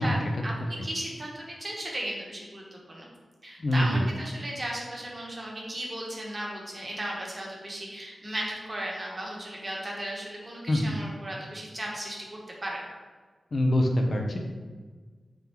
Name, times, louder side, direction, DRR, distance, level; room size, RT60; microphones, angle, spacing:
voice 1, 0.0-3.1 3.4-12.8, right 1 dB, 30° right, -2 dB, 0.9 m, -36 dB
voice 2, 3.6-4.1 10.7-10.9 13.5-14.4, left 1 dB, 55° left, 2 dB, 0.5 m, -24 dB
3.6 x 3.4 x 2.9 m, 1.4 s
wide cardioid pair, 75°, 0 cm